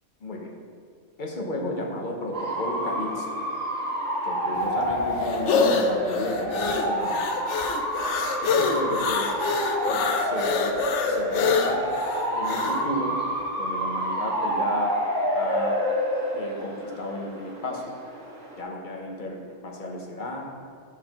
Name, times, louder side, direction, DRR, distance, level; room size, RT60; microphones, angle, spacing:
voice 1, 0.2-0.5 1.2-3.4 4.2-7.2 8.4-9.3 9.8-10.7 11.1-11.8 12.3-13.2 13.6-14.9 15.3-15.8 16.3-17.9 18.6-20.4, left 1 dB, 45° left, 0 dB, 1.0 m, -33 dB
Bark / Motor vehicle (road) / Siren, 2.3-18.6, equal, 80° right, 1.8 m, -28 dB
sound 1, 4.6-12.8, left 5 dB, 70° left, 0.9 m, -26 dB
5.7 x 4.7 x 5.8 m, 2.3 s
omnidirectional pair, 1.3 m